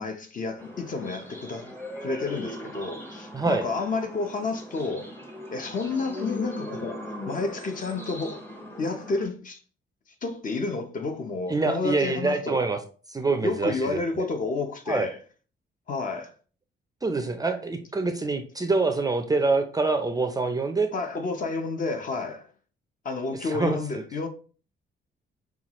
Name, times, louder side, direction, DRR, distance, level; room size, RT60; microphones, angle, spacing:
voice 1, 0.0-1.7 2.0-5.1 5.5-8.4 8.8-9.6 10.2-12.6 13.4-15.2 15.9-16.3 20.9-22.5 23.0-24.3, left 3 dB, 45° left, 0.8 m, -30 dB
sound 1, 0.6-9.2, left 1 dB, 10° left, 0.8 m, -39 dB
voice 2, 3.3-3.6 11.5-12.8 13.1-14.3 14.9-15.1 17.0-20.9 23.4-24.0, right 3 dB, 20° right, 0.4 m, -26 dB
5.6 x 2.4 x 3.0 m
cardioid pair, 115°, 19 cm